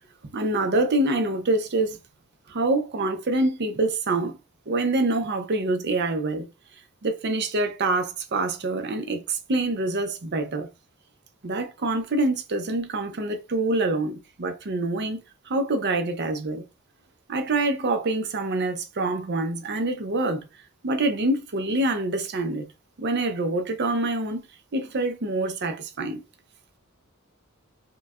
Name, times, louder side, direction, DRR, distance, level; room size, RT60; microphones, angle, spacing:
voice 1, 0.3-2.0 2.5-4.4 4.7-6.5 7.0-10.7 11.4-16.6 17.3-20.5 20.8-22.7 23.0-24.4 24.7-26.2, right 2 dB, 50° right, 0.6 m, -26 dB
4.5 x 2.2 x 2.4 m
head